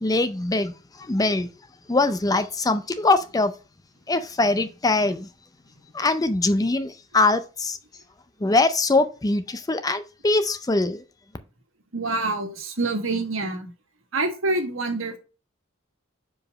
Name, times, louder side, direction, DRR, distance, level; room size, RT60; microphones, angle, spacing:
voice 1, 0.0-0.7 1.0-1.5 1.9-3.5 4.1-5.3 5.9-7.8 8.4-11.0, left 2 dB, 20° left, 0.5 m, -22 dB
voice 2, 11.9-13.7 14.1-15.2, right 2 dB, 75° right, 1.6 m, -26 dB
5.0 x 4.9 x 5.0 m
head